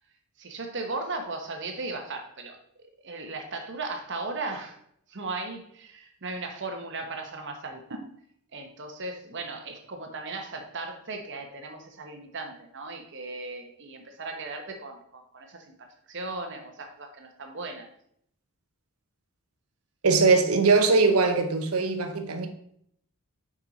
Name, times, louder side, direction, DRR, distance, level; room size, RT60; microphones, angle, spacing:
voice 1, 0.4-2.6 3.0-4.8 5.1-8.0 8.5-17.9, right 3 dB, 55° right, 4 dB, 1.0 m, -37 dB
voice 2, 20.0-22.5, right 4 dB, 80° right, 7 dB, 0.9 m, -21 dB
6.0 x 5.3 x 4.0 m, 0.68 s
head